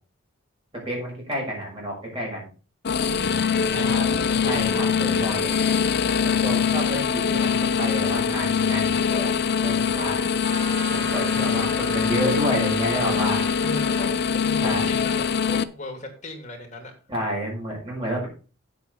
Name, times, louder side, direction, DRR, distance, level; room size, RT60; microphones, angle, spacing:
voice 1, 0.8-2.5 3.7-4.1 4.4-5.6 6.2-9.3 9.6-10.3 10.9-13.4 14.6-14.8 17.1-18.3, equal, 25° right, -3 dB, 6.5 m, -30 dB
sound 1, 2.8-15.6, left 6 dB, 50° left, 0.6 m, -23 dB
voice 2, 3.2-4.0 13.6-16.9, left 1 dB, 35° left, 1 dB, 2.9 m, -37 dB
Trumpet, 10.4-14.1, equal, 75° right, 2.3 m, -35 dB
8.4 x 7.7 x 5.4 m, 0.36 s
head